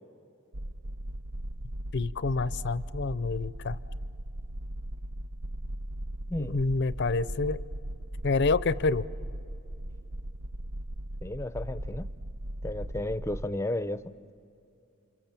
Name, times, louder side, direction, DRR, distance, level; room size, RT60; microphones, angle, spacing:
sound 1, 0.5-13.5, right 1 dB, 90° right, 0.8 m, -38 dB
voice 1, 1.9-3.8 6.4-7.6 8.2-9.1, left 3 dB, 55° left, 17 dB, 0.6 m, -28 dB
voice 2, 11.2-12.1 12.6-14.0, left 1 dB, 15° left, 14 dB, 0.6 m, -33 dB
29.5 x 26.5 x 7.5 m, 2.6 s
head